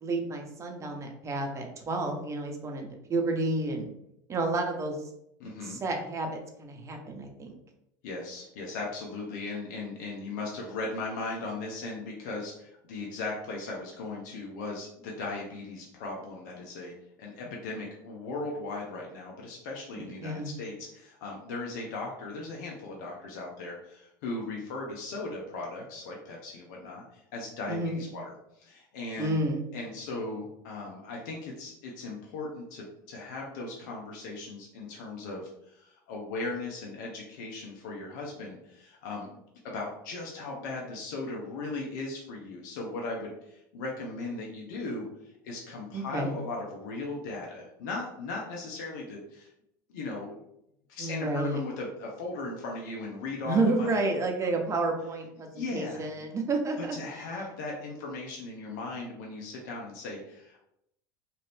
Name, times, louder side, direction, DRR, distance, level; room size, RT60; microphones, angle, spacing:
voice 1, 0.0-3.9 4.3-5.0 5.7-7.5 20.0-20.5 27.7-28.0 29.2-29.6 45.9-46.3 51.0-51.6 53.4-57.0, right 2 dB, 30° right, 2 dB, 0.8 m, -30 dB
voice 2, 5.4-5.8 8.0-16.9 17.2-29.4 29.7-39.4 39.6-45.1 45.4-49.5 49.9-50.4 50.9-54.1 55.4-56.1 56.9-60.6, left 3 dB, 75° left, -1 dB, 0.7 m, -38 dB
2.7 x 2.6 x 3.3 m, 0.79 s
hypercardioid pair, 90°, 10 cm